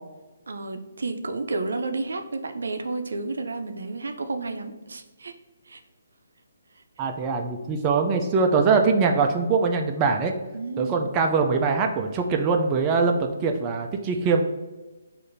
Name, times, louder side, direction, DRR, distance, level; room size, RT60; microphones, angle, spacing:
voice 1, 0.5-5.3 5.7-5.8 10.5-11.1, right 3 dB, 80° right, 6 dB, 0.4 m, -31 dB
voice 2, 7.0-10.3 10.8-14.4, right 4 dB, 20° right, 3 dB, 0.3 m, -22 dB
6.6 x 2.5 x 2.6 m, 1.2 s
hypercardioid pair, 160°, 0 cm